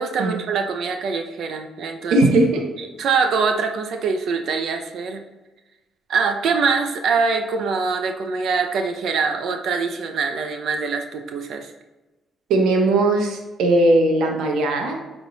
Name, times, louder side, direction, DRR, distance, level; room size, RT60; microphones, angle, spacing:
voice 1, 0.0-2.2 2.8-5.2 6.1-11.7, right 5 dB, 70° right, 5 dB, 0.7 m, -24 dB
voice 2, 2.1-2.6 12.5-15.0, right 2 dB, 85° right, 1 dB, 1.1 m, -18 dB
8.8 x 3.8 x 4.0 m, 1.1 s
cardioid pair, 90°, 0 cm